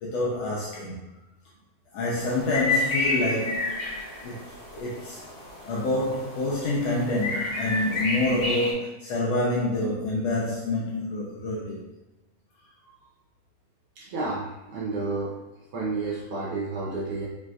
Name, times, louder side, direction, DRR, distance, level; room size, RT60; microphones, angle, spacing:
voice 1, 0.0-1.1 1.9-3.9 4.2-4.5 4.7-5.2 5.6-11.9 12.8-12.9, left 2 dB, 80° left, -5 dB, 1.5 m, -27 dB
sound 1, 2.2-8.7, left 2 dB, 55° left, 1.6 m, -30 dB
voice 2, 14.0-15.3 15.7-17.3, right 3 dB, 80° right, -5 dB, 1.2 m, -30 dB
4.9 x 3.3 x 2.3 m, 0.97 s
omnidirectional pair, 3.6 m